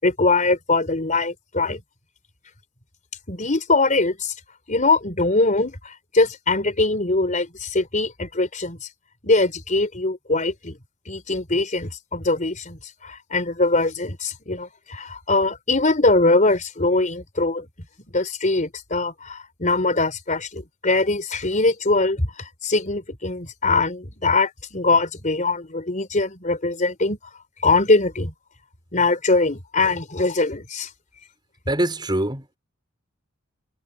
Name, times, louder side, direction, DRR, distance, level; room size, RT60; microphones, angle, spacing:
voice 1, 0.0-1.8 3.3-4.3 4.7-8.8 9.2-10.8 11.1-17.7 18.1-27.2 27.6-28.3 28.9-30.9, left 3 dB, 40° left, 4.2 m, -22 dB
voice 2, 31.7-32.6, right 1 dB, 20° right, 5.6 m, -24 dB
head